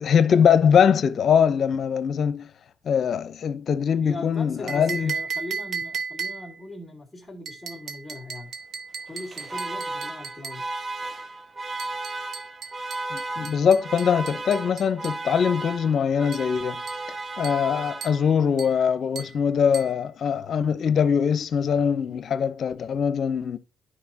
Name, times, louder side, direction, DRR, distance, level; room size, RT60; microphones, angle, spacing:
voice 1, 0.0-2.5 2.8-5.1 13.1-16.8 17.4-23.6, left 7 dB, 60° left, 0.7 m, -22 dB
voice 2, 4.0-8.5 9.1-10.6, left 2 dB, 10° left, 2.3 m, -39 dB
sound 1, 4.7-6.6 7.5-10.7 11.8-15.3 16.3-16.5 16.9-17.1 17.4-17.7 18.0-18.3 18.6-18.8 19.2-19.4 19.7-20.0, right 5 dB, 70° right, 0.8 m, -36 dB
Alarm, 9.1-18.5, right 2 dB, 45° right, 1.5 m, -34 dB
10.0 x 4.9 x 2.8 m
supercardioid pair, 65°, 0 cm